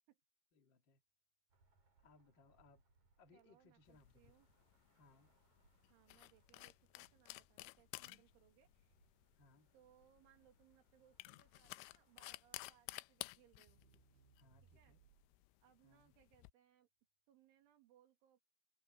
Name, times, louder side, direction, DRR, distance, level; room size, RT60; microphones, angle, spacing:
voice 1, 0.5-1.0 2.0-2.8 3.2-4.3 4.9-5.3 9.4-9.7 14.4-15.0 15.8-16.1, left 3 dB, 50° left, 1.3 m, -68 dB
sound 1, 1.5-12.4, right 3 dB, 40° right, 7.9 m, -78 dB
Crackle, 2.0-15.5, right 8 dB, 60° right, 3.3 m, -76 dB
voice 2, 3.3-4.5 5.9-9.1 9.7-13.8 14.7-15.0 15.6-16.9 17.3-18.4, right 11 dB, 75° right, 4.5 m, -71 dB
sound 2, 3.9-16.5, left 22 dB, 85° left, 2.9 m, -55 dB
omnidirectional pair, 5.6 m